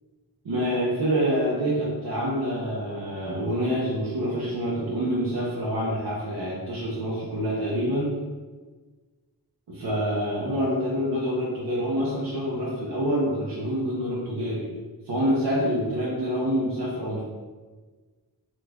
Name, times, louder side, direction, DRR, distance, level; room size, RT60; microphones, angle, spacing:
voice 1, 0.4-8.1 9.7-14.7 15.1-17.2, equal, 80° right, -6 dB, 0.7 m, -26 dB
3.0 x 2.4 x 3.4 m, 1.4 s
wide cardioid pair, 55°, 39 cm